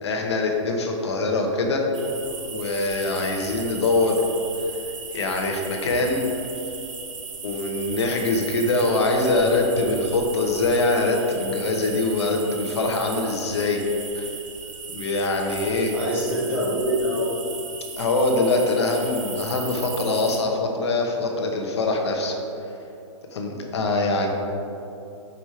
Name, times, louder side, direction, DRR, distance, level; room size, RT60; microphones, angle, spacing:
voice 1, 0.0-1.8 2.5-4.3 5.1-6.3 7.4-13.8 14.1-14.3 14.9-15.9 18.0-22.3 23.3-24.3, left 2 dB, 60° left, 2 dB, 1.0 m, -23 dB
sound 1, 1.9-20.4, right 5 dB, 75° right, 1.0 m, -37 dB
voice 2, 15.9-17.4, equal, 5° right, -7 dB, 0.4 m, -25 dB
5.4 x 4.8 x 4.3 m, 2.8 s
hypercardioid pair, 175°, 16 cm